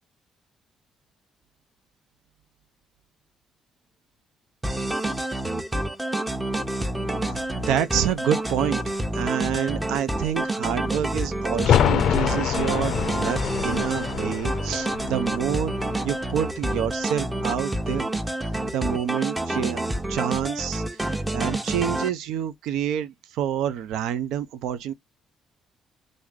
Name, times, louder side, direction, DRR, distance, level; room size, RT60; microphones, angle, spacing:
sound 1, 4.6-22.1, right 1 dB, 15° right, 0.9 m, -28 dB
voice 1, 7.3-15.7 16.0-18.1 18.7-19.8 20.1-24.9, right 9 dB, 75° right, 0.5 m, -28 dB
sound 2, 11.6-17.1 17.4-17.5, left 10 dB, 65° left, 0.4 m, -26 dB
3.1 x 2.6 x 3.5 m
hypercardioid pair, 50°, 0 cm